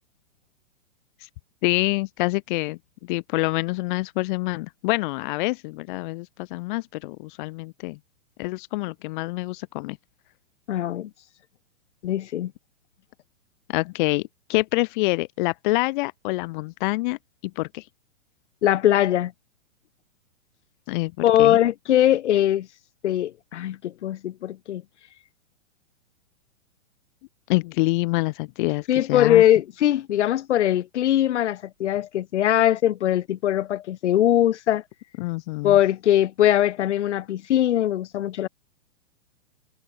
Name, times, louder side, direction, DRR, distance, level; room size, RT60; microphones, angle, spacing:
voice 1, 1.6-2.8 3.1-8.0 8.4-10.0 13.7-17.2 17.6-17.8 20.9-21.1 21.4-21.6 27.5-29.4 35.2-35.8, left 22 dB, 40° left, 2.7 m, -26 dB
voice 2, 10.7-11.1 12.0-12.5 18.6-19.3 21.2-22.7 23.0-24.8 28.9-34.8 35.6-38.5, left 12 dB, 60° left, 3.4 m, -21 dB
hypercardioid pair, 150°, 40 cm